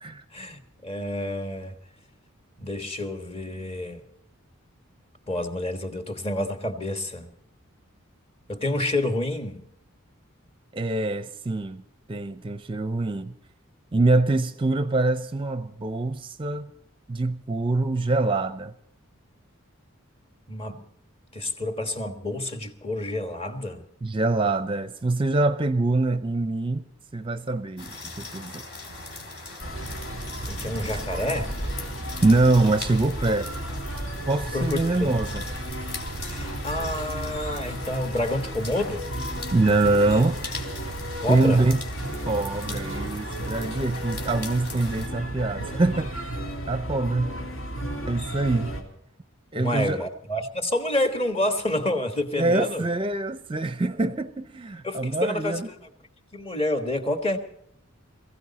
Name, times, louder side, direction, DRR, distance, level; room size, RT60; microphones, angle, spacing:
voice 1, 0.3-1.7 2.6-4.0 5.3-7.3 8.5-9.6 20.5-20.8 21.3-23.8 30.4-31.5 34.5-35.2 36.2-39.1 41.2-41.6 49.5-52.9 54.8-55.9 56.3-57.4, left 1 dB, 30° left, 1.5 m, -28 dB
voice 2, 10.7-11.8 12.1-13.3 13.9-16.7 17.1-18.7 24.0-26.8 27.1-28.6 30.7-31.0 32.2-33.5 34.3-35.4 39.5-40.4 41.3-41.8 42.3-46.3 46.7-47.4 48.1-48.8 49.5-50.0 52.4-55.7, right 2 dB, 25° right, 0.5 m, -24 dB
sound 1, 27.8-45.1, left 3 dB, 50° left, 3.5 m, -40 dB
sound 2, 29.6-48.8, right 1 dB, 75° left, 3.0 m, -34 dB
22.0 x 15.5 x 4.1 m
head